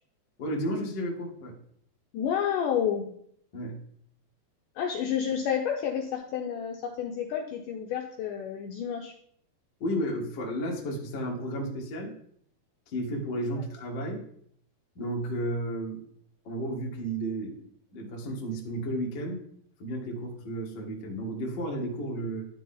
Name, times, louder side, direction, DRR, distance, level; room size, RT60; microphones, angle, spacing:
voice 1, 0.4-1.5 3.5-3.8 9.8-12.1 12.9-14.2 14.9-16.0 16.4-17.7 17.9-19.4 19.8-22.5, right 1 dB, 60° left, -1 dB, 1.1 m, -33 dB
voice 2, 2.1-3.1 4.8-9.1 13.6-13.7, left 8 dB, 80° left, 2 dB, 1.9 m, -30 dB
11.5 x 4.0 x 3.8 m, 0.66 s
omnidirectional pair, 4.3 m